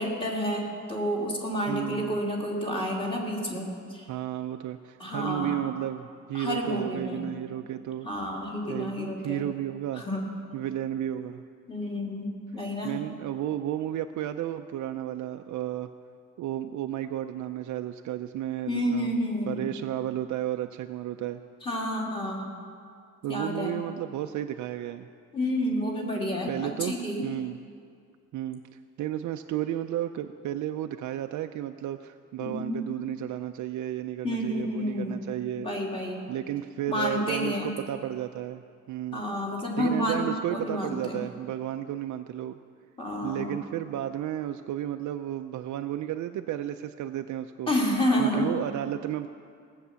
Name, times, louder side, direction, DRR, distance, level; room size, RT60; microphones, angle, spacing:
voice 1, 0.0-4.1 5.0-5.6 6.3-7.3 8.0-9.5 10.0-10.3 11.7-13.0 18.7-19.6 21.6-22.5 23.3-23.8 25.3-27.2 32.4-32.9 34.2-35.2 35.6-36.3 36.9-37.7 39.1-41.2 43.0-43.6 47.7-48.5, equal, 20° left, -2 dB, 2.3 m, -30 dB
voice 2, 1.7-2.2 4.1-8.1 8.7-10.0 10.5-11.4 12.8-15.9 16.4-19.1 19.5-21.4 23.2-25.1 26.5-26.9 27.2-27.6 28.3-28.6 29.0-35.7 36.3-38.6 38.9-39.2 39.8-42.6 43.2-47.7 48.2-49.3, right 12 dB, 80° right, 7 dB, 0.5 m, -33 dB
17.5 x 8.4 x 6.9 m, 2.2 s
wide cardioid pair, 160°, 30 cm